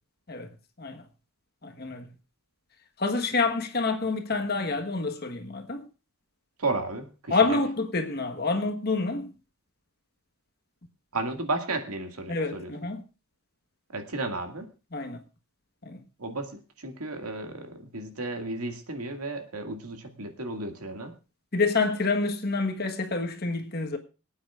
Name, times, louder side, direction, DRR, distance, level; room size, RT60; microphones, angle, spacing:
voice 1, 1.6-2.1 3.0-5.8 7.3-9.3 12.3-13.0 14.9-15.2 15.8-16.0 21.5-24.0, left 3 dB, 45° left, 1.3 m, -27 dB
voice 2, 6.6-7.6 11.1-12.7 13.9-14.7 16.2-21.1, right 2 dB, 90° right, 2.2 m, -33 dB
26.0 x 8.8 x 2.5 m
head